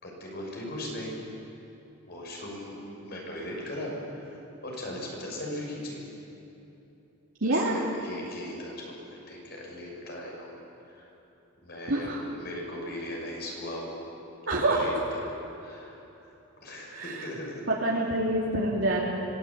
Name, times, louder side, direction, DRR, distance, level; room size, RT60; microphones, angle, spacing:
voice 1, 0.0-1.2 2.1-2.8 3.0-4.4 4.6-6.0 7.5-9.0 9.3-10.5 10.9-11.1 11.6-14.0 14.5-15.3 15.6-16.0 16.6-17.6, left 1 dB, 50° left, -1 dB, 6.7 m, -38 dB
voice 2, 7.4-7.8 11.9-12.2 14.5-14.9 16.9-17.2 17.7-19.0, right 1 dB, 65° right, -4 dB, 3.1 m, -26 dB
26.0 x 19.5 x 8.7 m, 3.0 s
head